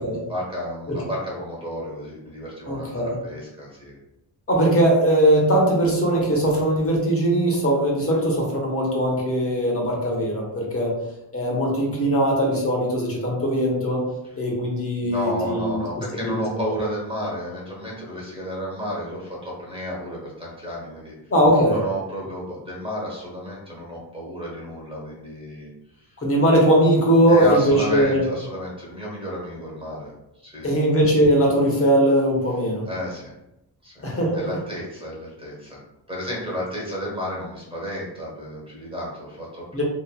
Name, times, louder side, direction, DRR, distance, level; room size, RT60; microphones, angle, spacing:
voice 1, 0.0-4.0 14.2-14.4 15.0-21.1 21.7-25.7 26.0-26.2 27.3-30.7 32.8-33.3 33.8-34.0 34.3-35.8 36.1-39.8, equal, 10° right, -5 dB, 1.0 m, -32 dB
voice 2, 2.7-3.1 4.5-10.9 11.3-14.0 14.4-15.8 16.2-16.4 21.3-21.8 26.2-28.2 30.6-32.8 34.0-34.6 39.7-39.8, right 1 dB, 30° left, -2 dB, 1.0 m, -20 dB
2.9 x 2.4 x 2.3 m, 0.88 s
cardioid pair, 90°, 46 cm